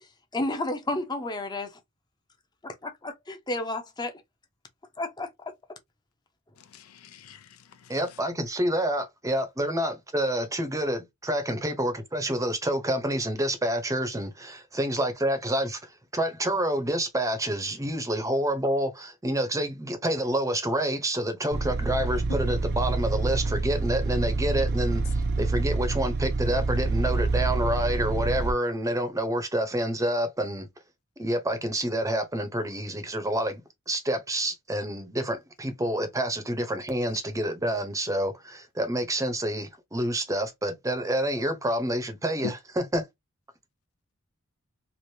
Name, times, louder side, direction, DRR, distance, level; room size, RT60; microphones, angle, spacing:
voice 1, 0.3-1.8 3.0-4.2 5.0-5.8, left 2 dB, 20° left, 0.7 m, -31 dB
voice 2, 6.6-8.2 42.4-42.5, left 7 dB, 75° left, 0.4 m, -41 dB
voice 3, 7.9-15.8 16.1-30.7 31.2-33.6 33.9-43.1, right 1 dB, 15° right, 0.7 m, -28 dB
sound 1, 21.5-28.5, right 3 dB, 50° right, 0.5 m, -27 dB
3.2 x 2.5 x 2.6 m
head